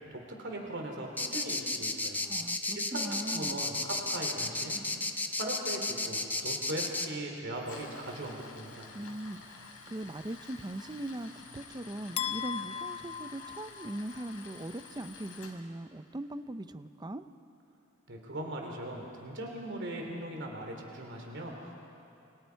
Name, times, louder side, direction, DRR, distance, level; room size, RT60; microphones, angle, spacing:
voice 1, 0.1-2.2 2.7-5.0 5.4-8.9 18.1-21.7, right 1 dB, 60° right, 1 dB, 3.1 m, -39 dB
sound 1, 1.2-7.1, left 2 dB, 10° left, 1.0 m, -33 dB
voice 2, 2.2-3.6 8.9-17.2, right 1 dB, 20° right, 11 dB, 0.6 m, -40 dB
Tools, 7.5-15.5, left 4 dB, 85° left, 3.5 m, -50 dB
sound 2, 12.2-14.3, left 8 dB, 30° left, 0.6 m, -37 dB
28.5 x 24.5 x 4.6 m, 2.6 s
head